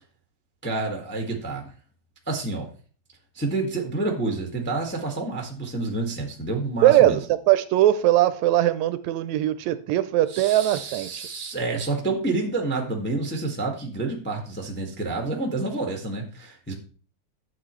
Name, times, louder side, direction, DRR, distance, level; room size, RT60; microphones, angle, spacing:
voice 1, 0.6-1.7 2.3-2.7 3.3-7.2 10.3-16.7, right 3 dB, 5° left, 2 dB, 0.9 m, -28 dB
voice 2, 6.8-7.2 7.5-11.3, right 14 dB, 80° right, 13 dB, 1.8 m, -20 dB
11.5 x 7.9 x 3.2 m, 0.39 s
omnidirectional pair, 3.4 m